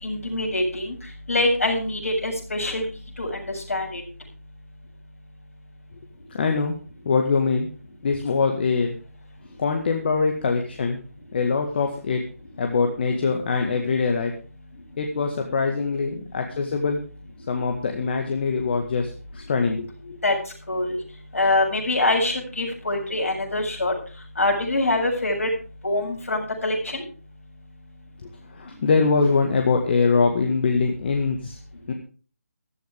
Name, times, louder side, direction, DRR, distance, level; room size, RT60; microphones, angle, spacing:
voice 1, 0.0-0.9 1.3-2.8 3.2-4.0 20.2-20.3 20.7-21.0 21.3-23.9 24.4-25.5 25.8-27.0, left 2 dB, 60° left, 0 dB, 7.5 m, -24 dB
voice 2, 6.3-6.7 7.1-7.7 8.0-9.0 9.6-11.0 11.3-12.2 12.6-14.3 15.0-17.0 17.5-20.2 28.5-31.6 31.9-32.0, left 4 dB, 40° left, 3 dB, 1.8 m, -23 dB
15.0 x 13.0 x 3.6 m, 0.38 s
figure-of-eight pair, 150°, 8 cm